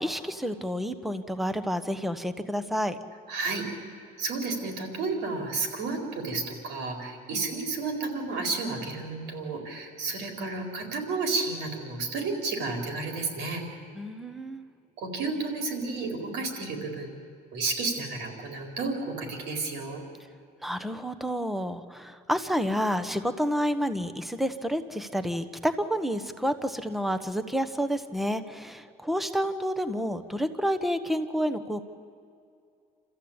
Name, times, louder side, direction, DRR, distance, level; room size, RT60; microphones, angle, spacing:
voice 1, 0.0-3.0 7.3-7.4 14.0-14.7 20.6-31.8, equal, ahead, 11 dB, 1.1 m, -29 dB
voice 2, 3.3-3.6 4.2-13.6 15.0-17.1 17.5-20.0, right 3 dB, 85° right, 3 dB, 4.3 m, -31 dB
29.0 x 14.0 x 8.8 m, 2.4 s
cardioid pair, 110°, 17 cm